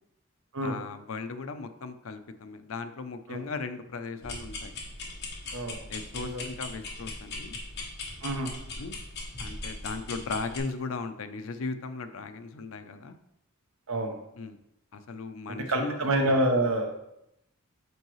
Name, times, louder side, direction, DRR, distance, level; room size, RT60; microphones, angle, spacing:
voice 1, 0.6-4.7 5.9-7.6 8.8-9.0 9.4-13.2 14.4-14.6 14.9-16.0, left 4 dB, 75° left, 9 dB, 0.5 m, -37 dB
sound 1, 4.2-10.6, left 2 dB, 55° left, 1.3 m, -39 dB
voice 2, 6.1-6.5 8.2-8.5 10.1-10.2 13.9-14.2 15.5-16.9, right 1 dB, 80° right, 3 dB, 1.0 m, -27 dB
8.0 x 4.7 x 3.1 m, 0.82 s
head